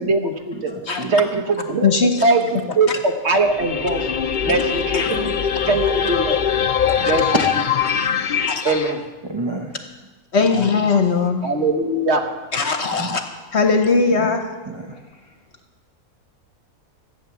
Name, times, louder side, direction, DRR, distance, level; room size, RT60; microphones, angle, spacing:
voice 1, 0.0-0.7 1.1-4.1 4.4-5.2 5.7-6.4 7.0-7.3 8.6-9.0 11.4-12.3, right 3 dB, 50° right, 5 dB, 1.3 m, -21 dB
voice 2, 0.5-1.5 2.1-2.3 4.5-5.9 7.0-7.2 9.2-9.8 12.9-13.5 14.6-15.4, right 2 dB, 30° right, 2 dB, 0.5 m, -33 dB
voice 3, 1.8-2.2 2.9-3.0 4.9-5.1 8.5-8.7 10.3-11.5 12.5-13.2 13.5-14.5, left 4 dB, 50° left, 6 dB, 1.1 m, -19 dB
sound 1, 3.4-8.9, left 8 dB, 70° left, 0.4 m, -22 dB
14.5 x 8.5 x 7.0 m, 1.3 s
omnidirectional pair, 1.6 m